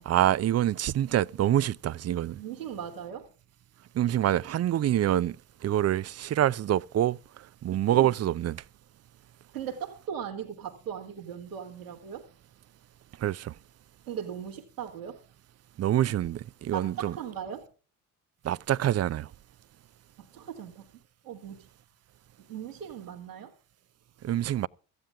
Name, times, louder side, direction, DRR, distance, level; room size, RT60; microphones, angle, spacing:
voice 1, 0.1-2.4 3.9-5.4 5.6-7.2 7.6-8.6 13.2-13.5 15.8-17.1 18.4-19.3 24.2-24.7, right 12 dB, 35° right, 0.6 m, -26 dB
voice 2, 2.3-3.3 7.7-8.1 9.5-12.2 14.1-15.2 16.7-17.7 20.2-20.8 21.2-21.7 22.5-23.5, right 8 dB, 85° right, 2.1 m, -38 dB
17.5 x 14.0 x 3.5 m
figure-of-eight pair, 45°, 44 cm